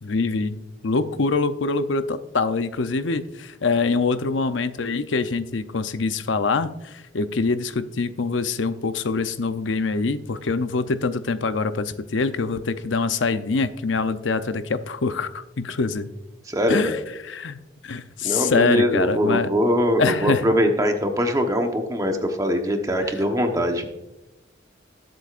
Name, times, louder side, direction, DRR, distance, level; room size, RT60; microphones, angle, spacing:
voice 1, 0.0-0.6 0.8-16.1 16.7-17.0 17.2-19.5 20.0-20.5 23.0-23.1, left 4 dB, 80° left, 11 dB, 0.6 m, -24 dB
voice 2, 16.5-16.9 18.2-23.8, equal, 20° right, 4 dB, 1.1 m, -22 dB
19.5 x 7.8 x 2.5 m, 0.96 s
head